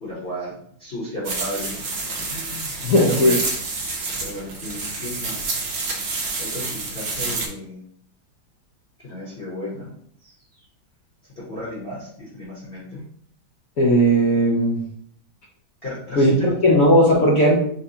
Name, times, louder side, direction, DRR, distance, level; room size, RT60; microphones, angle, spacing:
voice 1, 0.0-3.5 4.2-5.5 6.4-7.8 9.0-9.9 10.2-10.3 11.4-13.0 15.8-16.7, left 1 dB, 35° left, -8 dB, 1.0 m, -34 dB
sound 1, 1.2-7.5, right 3 dB, 70° right, 0.6 m, -28 dB
voice 2, 2.8-3.4 13.8-14.8 16.2-17.6, equal, 65° left, -3 dB, 0.9 m, -16 dB
5.6 x 2.3 x 2.8 m, 0.64 s
omnidirectional pair, 2.2 m